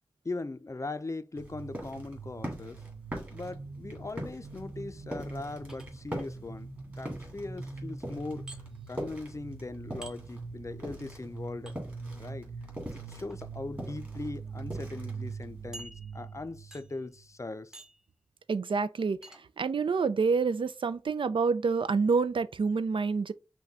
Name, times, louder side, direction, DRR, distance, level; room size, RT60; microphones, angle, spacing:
voice 1, 0.2-2.8 3.3-6.7 7.0-8.5 8.9-11.7 12.2-12.5 12.9-17.8, left 2 dB, 35° left, 0.4 m, -40 dB
sound 1, 1.4-10.4 10.7-15.7, equal, 25° right, 2.4 m, -41 dB
sound 2, 1.4-17.3, right 4 dB, 45° right, 0.9 m, -43 dB
sound 3, 5.7-6.3 8.5-8.6 10.0-10.2 11.7-11.8 13.1-13.4 14.1-14.2 14.6-14.7 15.7-16.4 16.7-17.1 17.7-18.1 19.2-19.4, right 2 dB, 5° right, 0.8 m, -48 dB
voice 2, 18.5-19.2 19.6-23.3, right 5 dB, 90° right, 0.4 m, -27 dB
5.9 x 2.2 x 4.0 m
wide cardioid pair, 80°, 8 cm